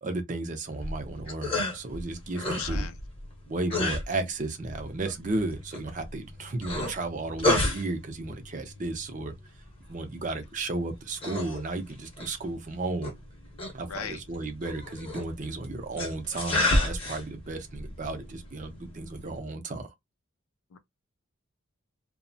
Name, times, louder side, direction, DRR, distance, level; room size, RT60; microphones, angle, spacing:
voice 1, 0.0-2.9 3.5-9.3 9.9-13.1 13.7-19.9, right 2 dB, 35° right, 0.5 m, -34 dB
sound 1, 0.7-19.4, left 1 dB, 25° left, 0.8 m, -33 dB
voice 2, 2.3-3.0 13.9-14.2 20.7-20.8, left 8 dB, 80° left, 0.4 m, -38 dB
2.7 x 2.1 x 2.6 m
head